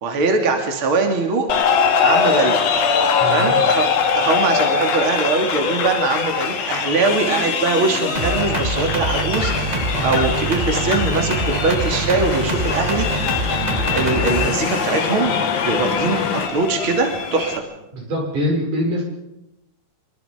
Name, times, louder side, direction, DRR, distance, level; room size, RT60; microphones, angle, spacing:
voice 1, 0.0-1.5 2.0-2.6 3.3-3.9 4.2-13.4 13.9-15.3 15.6-17.6, right 4 dB, 45° right, 3 dB, 3.4 m, -21 dB
sound 1, 1.5-17.6, left 6 dB, 80° left, 3.4 m, -22 dB
voice 2, 3.2-3.6 9.9-10.1 17.9-19.0, equal, 85° right, 0 dB, 7.8 m, -23 dB
sound 2, 8.1-14.5, right 2 dB, 25° right, 0.8 m, -24 dB
sound 3, 9.4-16.5, left 6 dB, 50° left, 1.6 m, -28 dB
26.0 x 24.0 x 5.2 m, 0.86 s
omnidirectional pair, 3.5 m